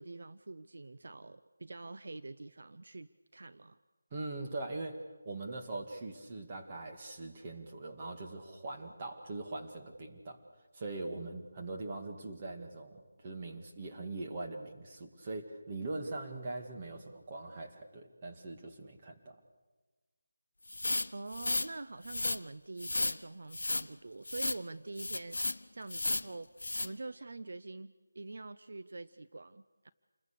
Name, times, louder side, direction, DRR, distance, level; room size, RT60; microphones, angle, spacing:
voice 1, 0.0-3.8 21.1-25.4 25.7-26.5 26.8-29.9, right 3 dB, 60° right, 13 dB, 0.7 m, -45 dB
voice 2, 4.1-10.4 10.7-19.4, right 2 dB, 25° right, 2 dB, 2.2 m, -42 dB
sound 1, 20.7-21.7 22.0-22.4 22.8-23.2 23.5-23.9 24.2-24.6 25.0-25.6 25.9-26.3 26.6-26.9, left 2 dB, 80° left, 0.8 m, -33 dB
28.0 x 21.5 x 6.8 m, 1.3 s
figure-of-eight pair, 170°, 0 cm